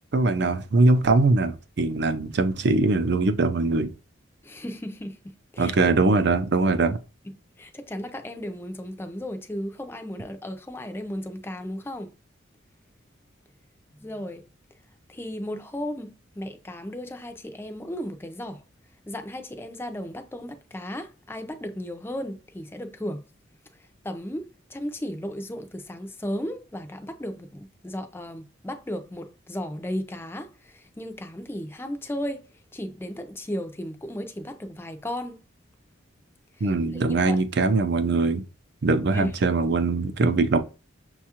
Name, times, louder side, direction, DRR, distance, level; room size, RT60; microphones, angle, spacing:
voice 1, 0.1-3.9 5.6-7.0 36.6-38.4 38.8-40.6, right 3 dB, 55° right, 0.5 m, -22 dB
voice 2, 4.4-5.7 7.6-12.1 13.9-14.5 15.1-18.6 19.1-23.2 23.8-35.4 36.5-37.4 39.1-39.3, equal, 10° left, 0.4 m, -35 dB
6.3 x 2.4 x 2.8 m
head